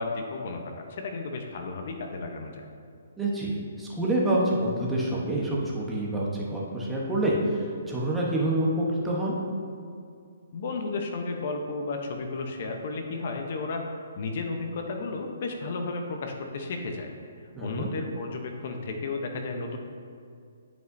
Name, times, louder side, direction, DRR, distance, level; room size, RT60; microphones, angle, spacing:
voice 1, 0.0-2.6 10.5-13.8 14.2-17.1 17.6-19.8, left 3 dB, 50° left, 3 dB, 0.8 m, -33 dB
voice 2, 3.2-9.4 17.5-17.9, right 1 dB, 5° right, -5 dB, 1.0 m, -27 dB
10.5 x 5.2 x 2.7 m, 2.3 s
hypercardioid pair, 155°, 0 cm